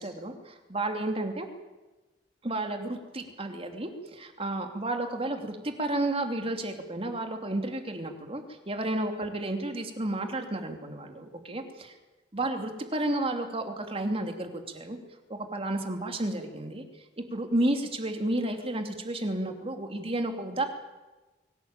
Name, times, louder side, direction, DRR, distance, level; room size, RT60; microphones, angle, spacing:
voice 1, 0.0-1.5 2.4-11.9 12.3-15.0 15.3-16.8 17.3-20.7, right 1 dB, 35° right, 5 dB, 3.0 m, -32 dB
24.0 x 18.0 x 9.0 m, 1.2 s
head